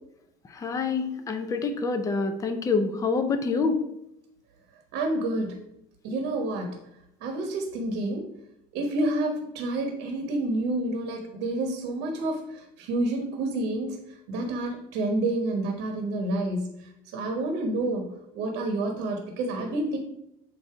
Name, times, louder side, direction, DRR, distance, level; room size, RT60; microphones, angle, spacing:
voice 1, 0.5-3.8, left 4 dB, 20° left, 7 dB, 0.5 m, -26 dB
voice 2, 4.9-5.6 6.0-6.8 7.2-8.3 8.7-14.0 14.3-16.7 17.1-20.0, right 2 dB, 80° right, 3 dB, 1.1 m, -29 dB
7.8 x 2.7 x 4.7 m, 0.83 s
cardioid pair, 135°, 18 cm